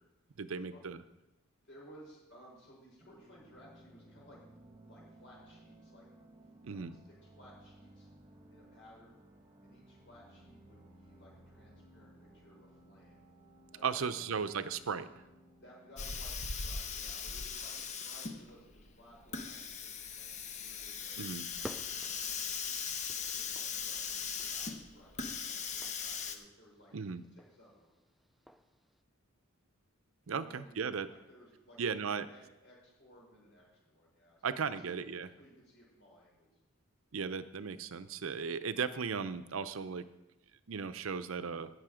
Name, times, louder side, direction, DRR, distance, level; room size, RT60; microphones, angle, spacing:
voice 1, 0.4-1.0 6.6-6.9 13.8-15.2 21.2-21.5 26.9-27.2 30.3-31.1 31.8-32.3 34.4-35.3 37.1-40.0 40.7-41.7, right 6 dB, 70° right, 13 dB, 0.6 m, -36 dB
voice 2, 1.6-4.4 4.8-6.1 6.7-8.1 8.5-9.2 9.6-13.2 13.7-14.3 15.6-21.2 21.5-22.6 23.3-26.9 27.3-27.9 30.3-34.9 35.4-36.5, equal, 60° left, -3 dB, 5.4 m, -59 dB
sound 1, 3.0-16.1, right 1 dB, 20° right, 1.5 m, -59 dB
Hiss, 16.0-26.4, left 6 dB, 35° left, 0.8 m, -39 dB
sound 2, 21.1-29.0, equal, ahead, 0.4 m, -54 dB
16.5 x 6.5 x 5.0 m, 0.96 s
head